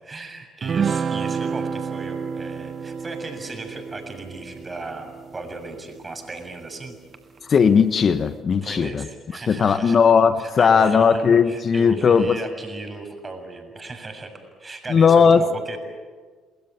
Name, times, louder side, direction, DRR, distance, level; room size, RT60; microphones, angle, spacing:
voice 1, 0.0-7.0 8.6-10.0 10.4-14.3 14.6-15.8, right 2 dB, 30° right, 5 dB, 7.0 m, -36 dB
sound 1, 0.6-6.3, right 6 dB, 45° right, 1.0 m, -29 dB
voice 2, 7.5-9.1 9.5-12.4 14.9-15.4, left 6 dB, 45° left, 12 dB, 1.2 m, -17 dB
30.0 x 20.5 x 8.8 m, 1.5 s
hypercardioid pair, 55°, 0 cm